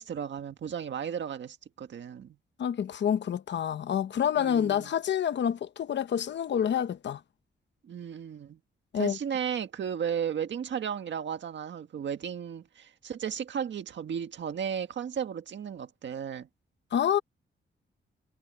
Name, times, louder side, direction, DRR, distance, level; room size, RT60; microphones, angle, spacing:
voice 1, 0.0-2.4 4.4-4.9 7.8-8.6 8.9-16.5, right 8 dB, 70° right, 1.7 m, -34 dB
voice 2, 2.6-7.2 8.9-9.2 16.9-17.2, left 9 dB, 65° left, 0.8 m, -28 dB
wide cardioid pair, 165°, 20 cm